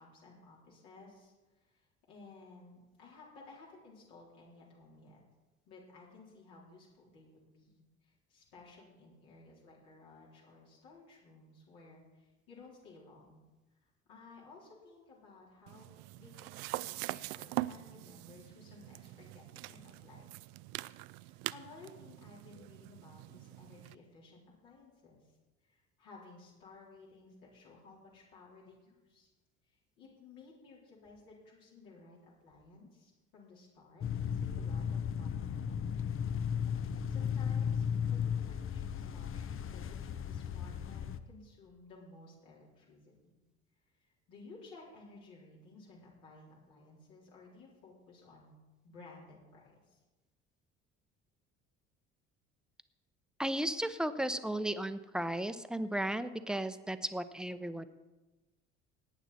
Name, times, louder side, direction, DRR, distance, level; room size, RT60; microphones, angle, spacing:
voice 1, 0.0-5.2 5.7-13.4 13.8-20.3 21.2-25.4 25.6-29.3 29.6-36.2 36.7-43.3 43.9-48.5 48.8-50.0, left 3 dB, 70° left, -5 dB, 4.1 m, -56 dB
sound 1, 15.7-23.9, right 19 dB, 65° right, 0.5 m, -43 dB
sound 2, 34.0-41.2, left 8 dB, 40° left, 0.9 m, -35 dB
voice 2, 53.4-57.9, right 1 dB, ahead, 11 dB, 0.9 m, -35 dB
18.0 x 9.2 x 4.3 m, 1.2 s
hypercardioid pair, 60°, 33 cm